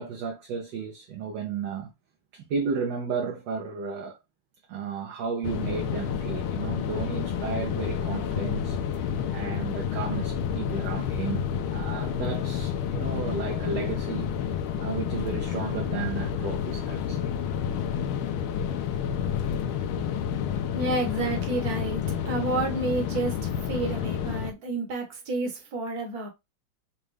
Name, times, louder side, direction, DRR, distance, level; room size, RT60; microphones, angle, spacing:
voice 1, 0.0-1.9 2.3-4.2 4.7-14.3 14.8-17.3, right 5 dB, 70° right, 1.3 m, -33 dB
sound 1, 5.4-24.5, left 8 dB, 85° left, 1.4 m, -30 dB
voice 2, 20.7-23.3 23.6-26.3, right 2 dB, 50° right, 1.5 m, -30 dB
5.3 x 2.4 x 3.3 m
omnidirectional pair, 2.3 m